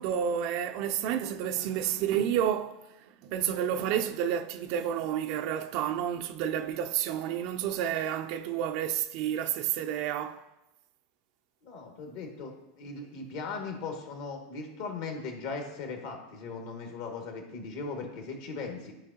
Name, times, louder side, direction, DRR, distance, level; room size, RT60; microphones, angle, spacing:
voice 1, 0.0-2.8 3.2-10.4, right 9 dB, 55° right, 0.5 m, -30 dB
voice 2, 11.6-18.9, left 4 dB, 60° left, 1.8 m, -38 dB
13.5 x 5.0 x 2.8 m
figure-of-eight pair, 85°, 0 cm